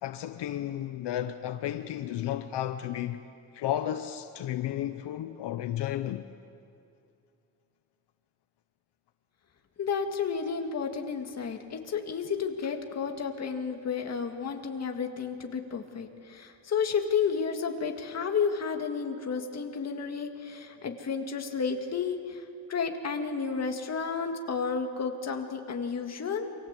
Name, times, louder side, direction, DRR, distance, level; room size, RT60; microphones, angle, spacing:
voice 1, 0.0-3.2 3.5-6.3, left 12 dB, 75° left, 1.0 m, -33 dB
voice 2, 9.8-22.4 22.7-26.5, left 6 dB, 40° left, 2.1 m, -31 dB
28.0 x 25.5 x 8.3 m
cardioid pair, 165°, 41 cm